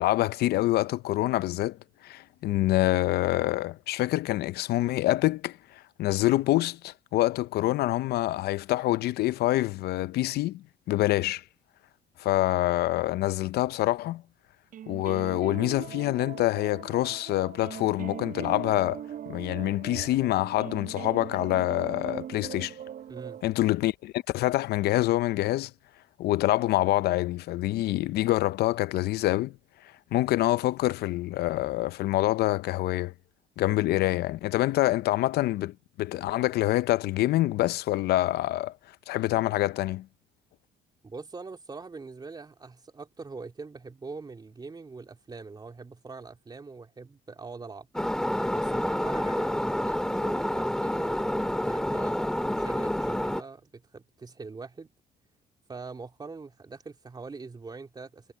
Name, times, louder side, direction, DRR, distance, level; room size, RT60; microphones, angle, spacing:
voice 1, 0.0-11.4 12.2-14.2 14.9-22.8 23.4-25.7 26.2-29.6 30.1-33.1 33.6-38.8 39.1-40.1, left 16 dB, 70° left, 0.6 m, -26 dB
sound 1, 14.7-23.4, right 9 dB, 55° right, 5.1 m, -40 dB
voice 2, 23.1-23.4 41.0-47.9 48.5-54.9 55.7-58.3, right 4 dB, 25° right, 3.3 m, -43 dB
sound 2, 47.9-53.4, left 1 dB, 5° left, 1.9 m, -28 dB
cardioid pair, 110°, 17 cm